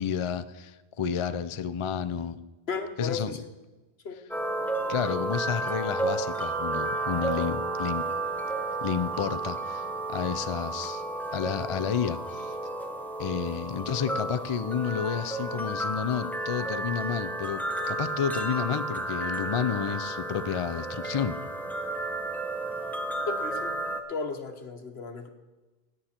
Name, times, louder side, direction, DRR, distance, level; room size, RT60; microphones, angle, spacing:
voice 1, 0.0-2.4 3.0-3.3 4.9-8.0 8.8-11.0 11.3-12.5 13.2-21.4, left 7 dB, 45° left, 11 dB, 0.4 m, -31 dB
voice 2, 2.7-3.4 4.0-4.2 23.3-23.8 24.1-25.3, left 4 dB, 75° left, 6 dB, 1.5 m, -34 dB
sound 1, 4.3-24.0, right 2 dB, ahead, 1.0 m, -32 dB
16.5 x 9.4 x 4.4 m, 1.2 s
omnidirectional pair, 1.1 m